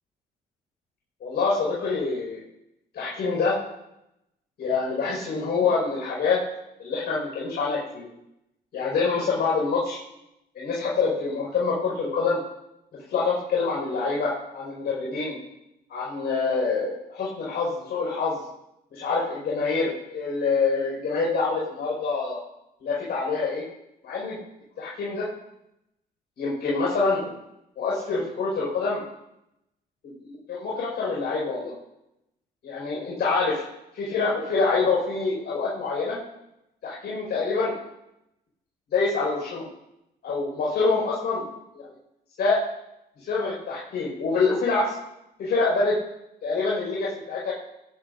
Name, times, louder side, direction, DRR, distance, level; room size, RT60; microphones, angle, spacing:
voice 1, 1.2-2.4 2.9-3.6 4.6-6.4 6.8-8.1 8.7-10.0 10.6-12.4 13.1-15.4 15.9-18.4 18.9-22.4 22.8-23.6 24.0-24.4 24.8-25.3 26.4-27.3 27.8-29.0 30.0-31.7 32.6-33.6 33.9-36.2 36.8-37.7 38.9-39.7 40.2-41.4 42.4-42.6 43.2-44.9 45.4-46.0 46.4-47.5, left 4 dB, 70° left, -6 dB, 5.5 m, -26 dB
20.0 x 11.5 x 2.7 m, 0.85 s
supercardioid pair, 60°, 18 cm